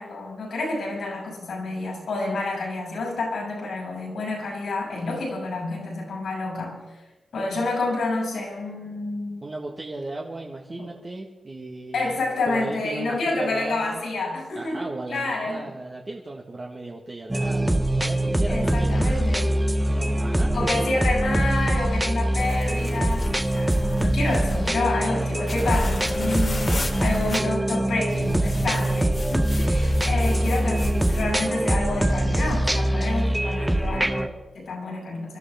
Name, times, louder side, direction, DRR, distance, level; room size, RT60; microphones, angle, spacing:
voice 1, 0.0-7.0 7.3-9.4 10.8-10.9 11.9-15.7 18.5-19.6 20.5-35.4, left 2 dB, 85° left, 0 dB, 6.4 m, -29 dB
voice 2, 9.4-12.2 12.5-14.1 14.5-19.2 19.9-20.9, right 2 dB, 35° right, -1 dB, 1.5 m, -36 dB
sound 1, 17.3-34.3, right 1 dB, 10° right, 0.8 m, -23 dB
sound 2, 22.4-24.7 25.5-27.4 28.1-31.3, left 2 dB, 45° left, 1.8 m, -35 dB
25.0 x 13.0 x 3.5 m, 1.2 s
cardioid pair, 80°, 0 cm